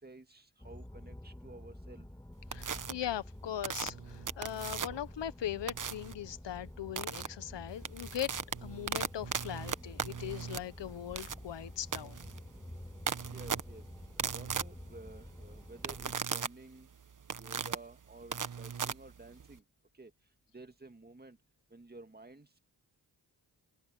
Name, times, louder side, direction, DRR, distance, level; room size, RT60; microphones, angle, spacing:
voice 1, 0.0-2.1 13.3-13.8 14.3-16.9 17.3-19.6 19.9-20.1 20.5-21.4 21.7-22.6, right 2 dB, 20° right, 2.2 m, -52 dB
sound 1, 0.6-16.2, left 1 dB, 5° left, 2.4 m, -49 dB
voice 2, 2.5-8.3 8.6-12.2, left 11 dB, 80° left, 1.3 m, -40 dB
sound 2, 2.5-2.9 3.6-5.1 5.7-6.1 7.0-7.3 7.7-19.6, right 6 dB, 45° right, 1.3 m, -38 dB
cardioid pair, 55°, 42 cm